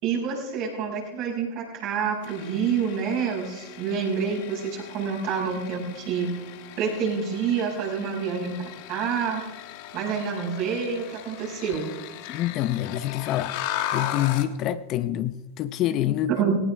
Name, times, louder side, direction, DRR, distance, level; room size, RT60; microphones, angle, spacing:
voice 1, 0.0-6.3 6.8-9.4 9.9-11.9 16.4-16.6, right 6 dB, 50° right, 5.9 m, -27 dB
sound 1, 2.2-14.6, left 11 dB, 60° left, 1.3 m, -37 dB
voice 2, 12.3-13.6 13.9-16.4, left 12 dB, 40° left, 0.6 m, -26 dB
18.0 x 17.5 x 3.4 m
supercardioid pair, 125°, 0 cm